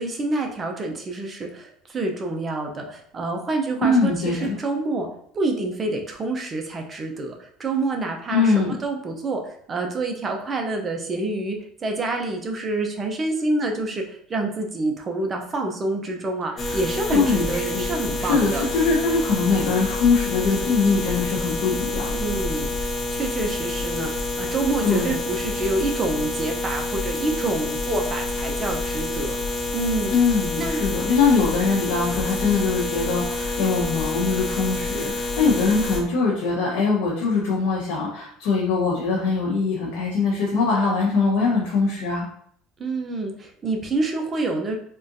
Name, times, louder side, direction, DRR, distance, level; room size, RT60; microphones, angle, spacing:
voice 1, 0.0-5.1 5.3-14.0 14.3-18.7 22.2-22.8 23.1-29.4 29.7-30.1 30.6-30.8 42.8-44.7, right 2 dB, 25° right, 2 dB, 0.5 m, -27 dB
voice 2, 3.8-4.5 8.3-8.7 16.6-16.8 17.1-17.8 18.2-22.1 24.8-25.1 30.1-42.3, left 4 dB, 75° left, -5 dB, 0.8 m, -22 dB
sound 1, 16.6-36.0, left 2 dB, 30° left, 0.6 m, -28 dB
3.6 x 2.5 x 2.5 m, 0.66 s
cardioid pair, 130°, 0 cm